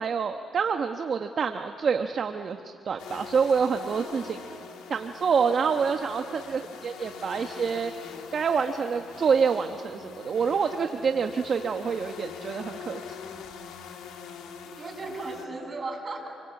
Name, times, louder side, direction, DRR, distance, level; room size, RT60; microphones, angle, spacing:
voice 1, 0.0-4.4 4.9-7.9 8.3-13.0, right 6 dB, 50° right, 6 dB, 1.2 m, -27 dB
sound 1, 3.0-15.5, left 6 dB, 90° left, 2.4 m, -43 dB
voice 2, 3.8-4.7 14.7-16.3, right 3 dB, 30° right, 1 dB, 7.3 m, -37 dB
28.0 x 24.0 x 8.5 m, 2.4 s
cardioid pair, 90°, 0 cm